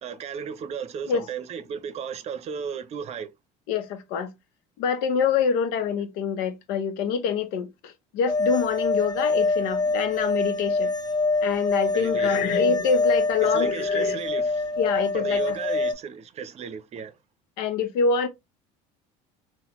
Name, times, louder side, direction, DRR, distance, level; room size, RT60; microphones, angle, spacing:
voice 1, 0.0-3.3 11.9-12.5 13.4-14.8 15.1-17.1, right 7 dB, 45° right, 0.6 m, -35 dB
voice 2, 3.7-4.3 4.8-10.9 11.4-14.2 14.8-15.6 17.6-18.3, left 6 dB, 80° left, 0.7 m, -26 dB
sound 1, 8.3-15.9, left 3 dB, 25° left, 0.9 m, -25 dB
3.9 x 2.2 x 2.9 m
supercardioid pair, 105°, 15 cm